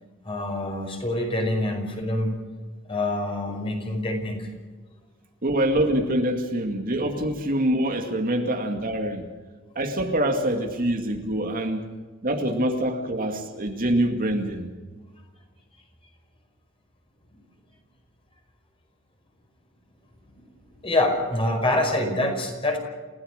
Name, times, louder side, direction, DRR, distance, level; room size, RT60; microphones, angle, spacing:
voice 1, 0.3-2.3 2.9-4.5 17.3-17.4 20.3-20.4 20.7-22.8, left 1 dB, 25° left, 5.3 m, -26 dB
voice 2, 5.4-9.3 9.8-11.9 12.2-14.7, right 1 dB, 45° right, 2.2 m, -25 dB
29.5 x 16.5 x 6.6 m
head